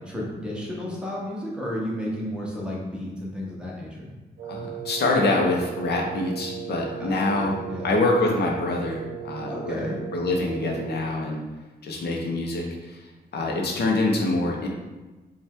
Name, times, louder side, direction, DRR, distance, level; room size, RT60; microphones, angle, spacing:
voice 1, 0.0-4.1 7.0-7.1 7.4-7.9 9.4-10.0, left 1 dB, 5° right, -4 dB, 0.9 m, -33 dB
voice 2, 4.4-11.4 11.8-13.0 13.3-14.7, left 2 dB, 75° left, 0 dB, 0.7 m, -25 dB
Wind instrument woodwind instrument, 4.4-11.1, right 10 dB, 75° right, 0.7 m, -36 dB
5.2 x 2.4 x 3.5 m, 1.2 s
wide cardioid pair, 130°, 17 cm